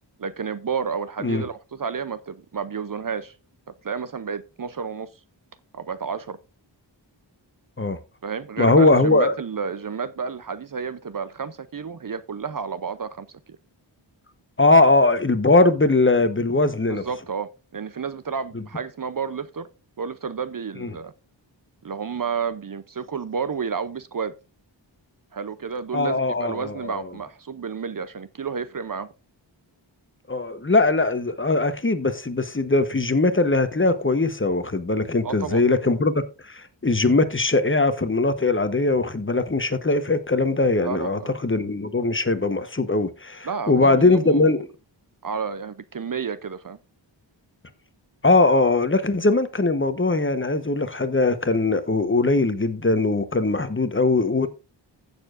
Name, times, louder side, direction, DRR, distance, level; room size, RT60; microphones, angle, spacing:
voice 1, 0.2-3.4 3.8-5.1 5.7-6.4 8.2-13.3 16.9-19.7 20.0-21.1 21.8-24.3 25.3-29.1 35.2-35.6 40.8-41.3 43.4-44.6 45.2-46.8, right 6 dB, 50° right, 0.6 m, -31 dB
voice 2, 8.6-9.3 14.6-17.0 18.5-18.6 20.8-20.9 25.9-27.1 30.3-44.7 48.2-54.5, left 3 dB, 25° left, 1.0 m, -20 dB
15.5 x 6.9 x 2.5 m
wide cardioid pair, 95°, 44 cm